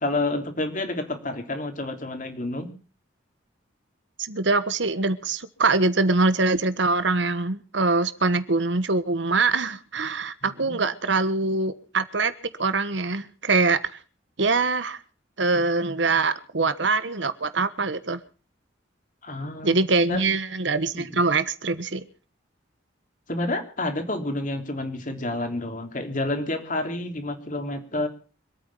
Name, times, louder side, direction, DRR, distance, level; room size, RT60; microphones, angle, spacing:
voice 1, 0.0-2.7 10.4-10.8 19.2-20.2 20.9-21.2 23.3-28.1, left 2 dB, 40° left, 5 dB, 3.3 m, -29 dB
voice 2, 4.2-12.3 12.6-13.8 14.4-15.0 15.4-18.2 19.6-22.0, right 3 dB, 70° right, 13 dB, 1.3 m, -23 dB
25.5 x 9.3 x 5.5 m, 0.38 s
head